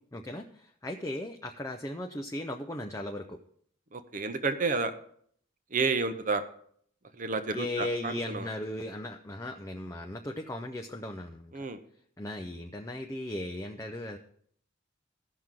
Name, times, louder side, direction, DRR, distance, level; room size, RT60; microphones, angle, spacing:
voice 1, 0.1-3.4 7.5-11.5 12.2-14.2, left 1 dB, 15° left, 3 dB, 0.5 m, -37 dB
voice 2, 3.9-4.9 5.7-6.4 7.2-8.5 11.5-11.8, right 4 dB, 40° right, 9 dB, 0.6 m, -30 dB
15.5 x 6.0 x 3.7 m, 0.63 s
head